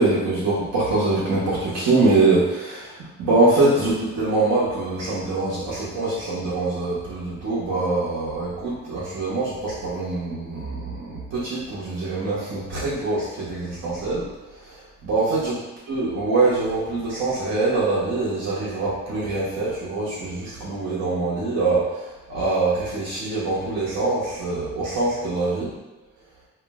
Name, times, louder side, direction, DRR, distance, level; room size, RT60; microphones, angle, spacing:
voice 1, 0.0-14.2 14.5-15.5 15.9-25.7, right 3 dB, 60° right, -9 dB, 0.9 m, -24 dB
2.5 x 2.1 x 3.4 m, 1.1 s
cardioid pair, 90°, 30 cm